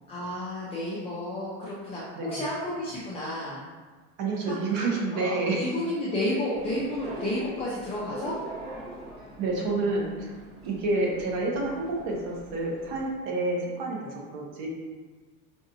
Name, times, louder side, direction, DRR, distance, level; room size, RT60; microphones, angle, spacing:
voice 1, 0.1-3.6 4.4-4.6 5.1-8.4, left 1 dB, 20° left, -7 dB, 0.6 m, -31 dB
voice 2, 2.2-2.5 4.2-5.7 9.4-14.7, right 2 dB, 55° right, -1 dB, 1.0 m, -29 dB
sound 1, 6.5-13.1, right 1 dB, 30° right, 1.4 m, -43 dB
4.9 x 2.6 x 2.7 m, 1.4 s
supercardioid pair, 140°, 31 cm